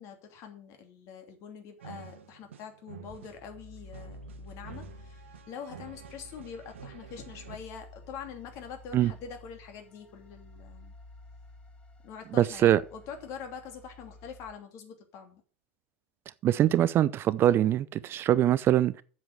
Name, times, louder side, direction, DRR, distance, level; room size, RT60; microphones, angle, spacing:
voice 1, 0.0-10.9 12.0-15.4, left 7 dB, 45° left, 2.9 m, -44 dB
sound 1, 1.8-7.6, right 6 dB, 70° right, 1.3 m, -48 dB
sound 2, 3.1-14.5, left 2 dB, 15° left, 2.0 m, -51 dB
voice 2, 12.3-12.8 16.4-19.0, right 12 dB, 35° right, 0.5 m, -23 dB
7.9 x 7.6 x 7.8 m
figure-of-eight pair, 85°, 7 cm